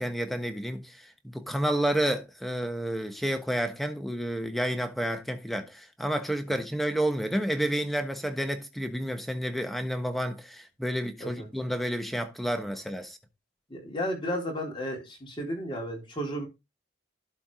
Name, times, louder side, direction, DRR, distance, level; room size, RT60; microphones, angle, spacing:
voice 1, 0.0-13.2, equal, ahead, 1.2 m, -30 dB
voice 2, 13.7-16.5, equal, 25° left, 4.2 m, -33 dB
12.0 x 4.5 x 5.0 m
head